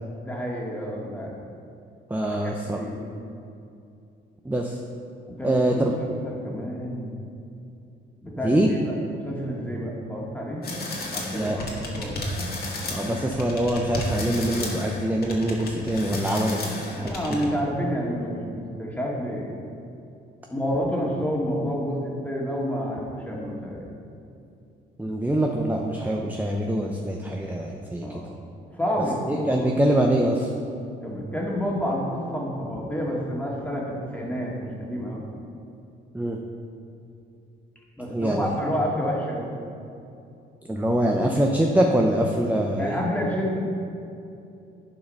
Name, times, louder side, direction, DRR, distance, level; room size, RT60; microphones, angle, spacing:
voice 1, 0.2-1.3 2.4-2.9 5.3-7.1 8.2-8.6 8.9-10.6 11.1-12.2 16.9-19.5 20.5-23.9 28.0-28.3 28.7-29.7 31.0-35.2 38.0-39.5 42.8-43.6, equal, 10° left, -3 dB, 2.1 m, -29 dB
voice 2, 2.1-2.8 4.4-4.8 5.4-5.9 8.4-8.7 11.3-11.6 12.9-17.1 25.0-28.0 29.3-30.5 36.1-36.4 38.1-38.5 40.7-42.9, right 1 dB, 10° right, 1 dB, 0.7 m, -24 dB
sound 1, 10.6-17.5, left 2 dB, 50° left, 1.8 m, -32 dB
11.0 x 4.8 x 5.5 m, 2.6 s
cardioid pair, 90°, 20 cm